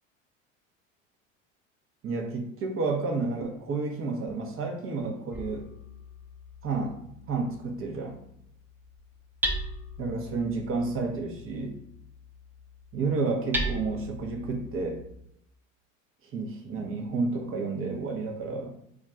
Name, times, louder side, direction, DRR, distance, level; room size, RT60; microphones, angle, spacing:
voice 1, 2.0-5.7 6.6-7.0 7.3-8.2 10.0-11.8 12.9-15.0 16.2-18.8, right 3 dB, 35° right, 3 dB, 0.7 m, -31 dB
Hammer, 5.3-15.1, right 1 dB, 5° right, 0.3 m, -38 dB
2.4 x 2.2 x 3.9 m, 0.74 s
hypercardioid pair, 75°, 39 cm